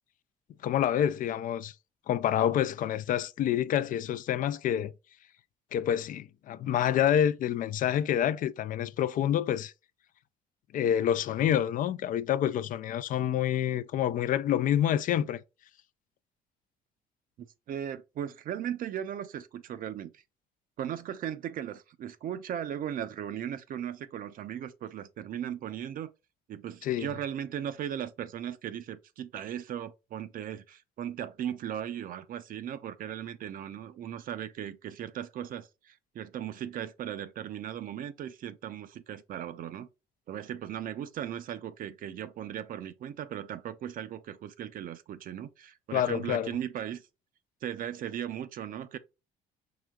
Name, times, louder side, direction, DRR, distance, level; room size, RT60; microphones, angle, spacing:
voice 1, 0.6-1.7 2.1-4.9 5.7-9.7 10.7-15.4 26.8-27.1 45.9-46.5, left 10 dB, 55° left, 0.4 m, -27 dB
voice 2, 17.4-20.2 20.8-26.1 26.5-39.9 40.3-47.0 47.6-49.0, right 10 dB, 55° right, 0.6 m, -37 dB
4.8 x 3.4 x 2.3 m
cardioid pair, 110°, 17 cm